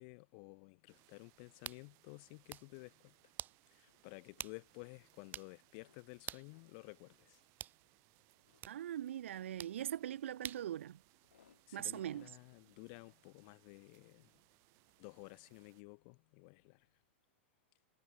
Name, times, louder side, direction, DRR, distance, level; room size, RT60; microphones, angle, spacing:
voice 1, 0.0-3.2 3.7-7.4 11.7-14.4 15.0-16.9, left 36 dB, 50° left, 0.7 m, -54 dB
sound 1, 0.7-17.2, left 9 dB, 85° left, 7.2 m, -77 dB
sound 2, 0.9-15.8, right 29 dB, 45° right, 4.3 m, -71 dB
sound 3, 1.6-1.8 2.3-2.7 3.4-3.6 4.4-4.6 4.9-5.0 5.3-5.5 6.3-6.5 7.6-7.8 8.6-8.8 9.6-9.8 10.4-10.7, right 11 dB, 30° right, 1.0 m, -46 dB
voice 2, 8.7-11.0 11.7-12.3, right 11 dB, 80° right, 0.5 m, -41 dB
hypercardioid pair, 120°, 7 cm